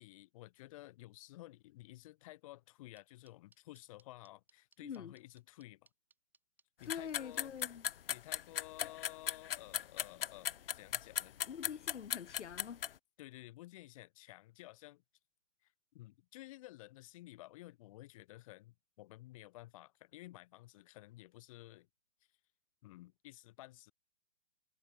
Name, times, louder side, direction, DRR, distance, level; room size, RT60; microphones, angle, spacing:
voice 1, 0.0-5.9 6.8-7.5 8.1-11.4 13.2-15.0 15.6-21.9 22.8-23.9, left 17 dB, 30° left, 1.5 m, -54 dB
sound 1, 3.0-8.6, right 4 dB, 5° right, 3.3 m, -67 dB
voice 2, 4.8-5.1 6.9-7.8 11.5-12.8, left 7 dB, 70° left, 1.2 m, -45 dB
sound 2, 6.9-12.9, left 10 dB, 50° left, 0.7 m, -36 dB
hypercardioid pair, 150°, 36 cm